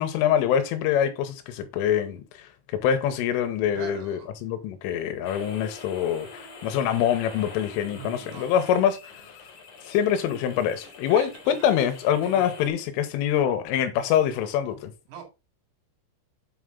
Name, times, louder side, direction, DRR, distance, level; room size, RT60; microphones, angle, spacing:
voice 1, 0.0-2.5 2.8-9.3 9.8-14.9, left 9 dB, 85° left, 3.2 m, -25 dB
voice 2, 3.8-4.3 7.9-8.8 9.1-9.3 10.8-11.6 12.2-12.6 15.1-15.2, right 7 dB, 90° right, 4.8 m, -43 dB
sound 1, 5.2-12.7, left 4 dB, 45° left, 2.3 m, -45 dB
8.1 x 4.8 x 3.7 m
omnidirectional pair, 6.0 m